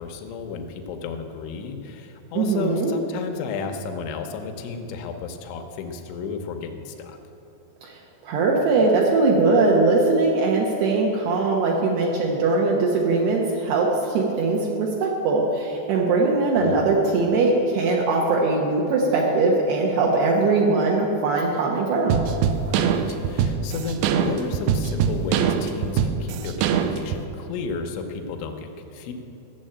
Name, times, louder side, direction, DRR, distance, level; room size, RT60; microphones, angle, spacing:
voice 1, 0.0-7.2 16.5-16.9 22.6-29.1, left 5 dB, 90° left, 5 dB, 3.3 m, -33 dB
voice 2, 2.3-2.9 7.8-8.0 8.2-22.2, right 3 dB, 70° right, -2 dB, 2.9 m, -21 dB
sound 1, 22.1-27.2, right 8 dB, 85° right, 2.3 m, -23 dB
14.5 x 7.2 x 8.7 m, 3.0 s
omnidirectional pair, 5.2 m